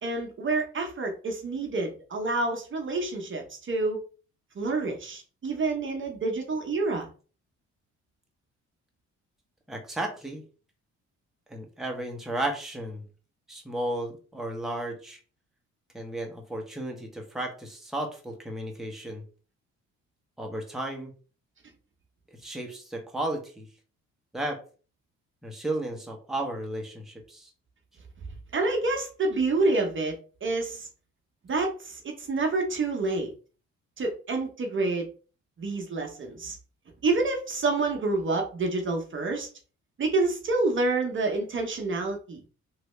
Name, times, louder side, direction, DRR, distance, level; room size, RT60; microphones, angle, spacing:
voice 1, 0.0-4.0 4.5-7.1 28.5-30.1 30.4-30.9 31.4-33.3 34.0-35.1 35.6-36.6 37.0-39.5 40.0-42.4, right 3 dB, 40° right, 3 dB, 0.9 m, -28 dB
voice 2, 9.7-10.4 11.5-13.0 13.5-15.2 15.9-19.2 20.4-21.1 22.4-23.7 24.3-24.6 25.4-27.5, right 1 dB, ahead, 1 dB, 0.9 m, -34 dB
3.0 x 2.6 x 3.2 m, 0.37 s
cardioid pair, 90°, 30 cm